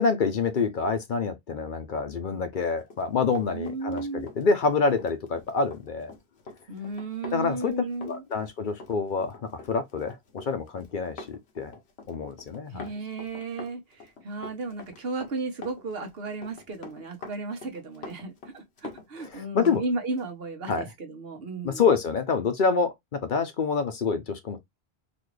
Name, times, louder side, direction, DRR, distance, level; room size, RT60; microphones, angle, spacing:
voice 1, 0.0-6.1 7.3-7.7 8.0-11.7 12.1-12.8 19.2-19.8 20.7-20.8 21.6-24.6, left 5 dB, 55° left, 0.8 m, -27 dB
Run, 2.8-19.8 20.2-20.3, left 3 dB, 80° left, 1.2 m, -45 dB
voice 2, 3.5-4.3 6.7-8.2 12.7-21.8, right 3 dB, 70° right, 1.2 m, -34 dB
4.0 x 2.6 x 3.1 m
omnidirectional pair, 1.1 m